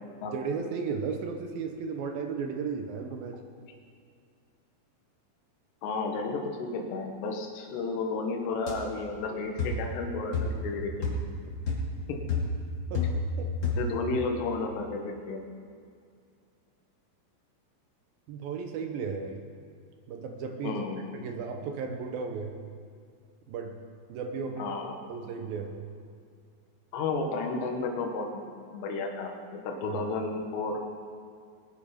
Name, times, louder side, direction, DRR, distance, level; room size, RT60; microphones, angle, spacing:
voice 1, 0.2-3.4 12.9-13.7 18.3-19.4 20.1-20.8 21.1-22.6 23.5-23.7 24.1-24.8 25.1-25.8 29.9-30.0, right 5 dB, 70° right, 4 dB, 2.3 m, -35 dB
voice 2, 5.8-11.2 12.1-12.2 13.8-15.4 20.6-21.1 24.6-25.0 26.9-28.5 28.7-30.9, left 3 dB, 80° left, 2 dB, 3.4 m, -32 dB
sound 1, 8.7-8.8 9.6-9.9 10.3-10.7 11.0-11.3 11.7-12.0 12.3-13.4 13.6-14.0, left 3 dB, 35° left, 2.4 m, -30 dB
20.5 x 11.0 x 5.2 m, 2.2 s
omnidirectional pair, 5.0 m